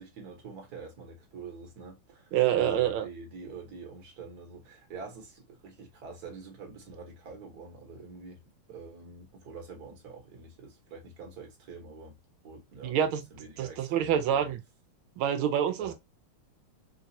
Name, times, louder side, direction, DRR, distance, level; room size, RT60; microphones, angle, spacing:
voice 1, 0.0-8.4 8.7-12.1 12.4-13.0 13.3-14.5 15.8-15.9, right 4 dB, 50° right, 1.5 m, -46 dB
voice 2, 2.3-3.1 12.8-13.2 13.6-14.6 15.2-15.9, right 9 dB, 75° right, 1.4 m, -26 dB
3.8 x 2.4 x 2.6 m
omnidirectional pair, 2.4 m